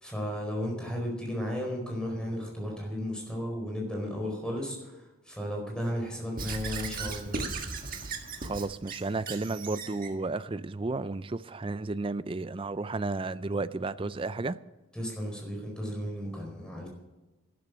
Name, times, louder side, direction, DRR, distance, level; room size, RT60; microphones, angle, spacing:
voice 1, 0.0-7.3 14.9-16.9, equal, 5° left, 4.5 m, -34 dB
Squeak / Writing, 6.4-10.1, right 4 dB, 40° right, 1.7 m, -37 dB
voice 2, 8.4-14.6, right 3 dB, 25° right, 0.4 m, -33 dB
12.0 x 12.0 x 6.3 m
head